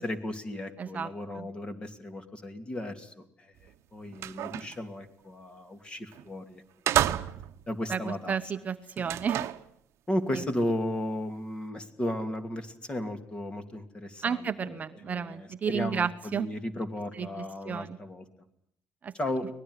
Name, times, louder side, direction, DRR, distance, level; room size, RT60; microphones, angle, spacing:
voice 1, 0.0-7.2 7.7-8.4 10.1-18.3 19.1-19.5, left 1 dB, 20° left, 8 dB, 2.7 m, -35 dB
voice 2, 0.8-1.1 1.3-1.5 7.9-9.5 10.3-10.4 14.2-16.5 17.2-18.0 19.0-19.1, right 7 dB, 30° right, 9 dB, 0.9 m, -32 dB
sound 1, 3.6-3.7 4.1-4.8 6.1-6.3 6.9-7.6 9.0-9.7, right 12 dB, 65° right, 1.0 m, -30 dB
24.0 x 19.5 x 9.7 m, 0.68 s
cardioid pair, 145°, 5 cm